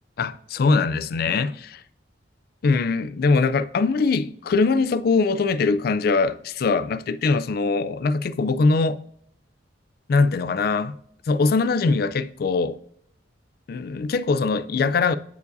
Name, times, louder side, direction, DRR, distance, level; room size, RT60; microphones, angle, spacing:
voice 1, 0.2-1.8 2.6-9.0 10.1-11.0 11.3-12.8 13.7-15.2, left 4 dB, 50° left, 0.3 m, -22 dB
8.1 x 4.6 x 2.6 m
head